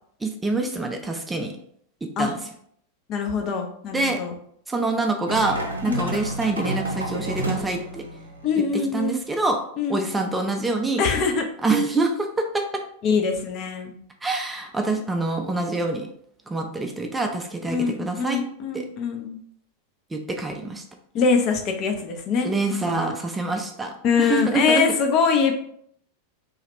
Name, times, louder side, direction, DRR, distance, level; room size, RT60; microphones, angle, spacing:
voice 1, 0.2-1.5 2.0-2.4 3.9-4.2 4.7-8.0 8.6-9.6 9.9-11.0 11.6-12.8 14.2-16.1 16.5-18.4 18.7-18.9 20.1-20.8 22.4-23.9 24.2-24.8, right 3 dB, 10° right, 3 dB, 0.5 m, -26 dB
voice 2, 3.1-4.3 5.9-6.1 8.4-9.2 9.8-10.0 11.0-11.4 13.0-13.9 17.7-19.4 21.1-22.5 22.9-23.1 24.0-25.5, left 5 dB, 35° left, 4 dB, 0.6 m, -23 dB
sound 1, 5.3-8.6, right 2 dB, 80° right, 0.6 m, -30 dB
3.0 x 2.3 x 3.3 m, 0.65 s
figure-of-eight pair, 90°, 0 cm